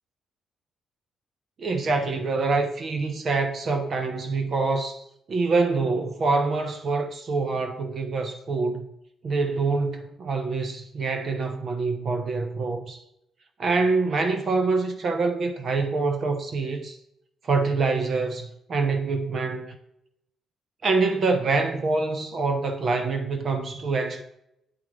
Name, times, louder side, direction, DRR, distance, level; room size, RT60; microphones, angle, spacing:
voice 1, 1.6-5.0 5.3-8.9 9.2-13.0 13.6-17.0 17.5-19.8 20.8-24.2, right 3 dB, 50° right, 0.9 m, -25 dB
8.7 x 4.9 x 3.2 m
cardioid pair, 90°, 0 cm